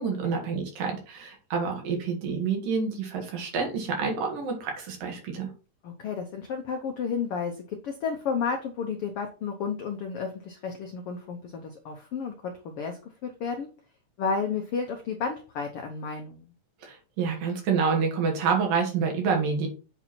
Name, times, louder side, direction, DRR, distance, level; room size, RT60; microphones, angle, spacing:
voice 1, 0.0-5.5 16.8-19.7, right 5 dB, 85° right, 2 dB, 3.5 m, -28 dB
voice 2, 5.8-13.7 14.2-16.4, left 5 dB, 80° left, 4 dB, 1.3 m, -32 dB
8.0 x 4.4 x 4.2 m, 0.35 s
omnidirectional pair, 3.7 m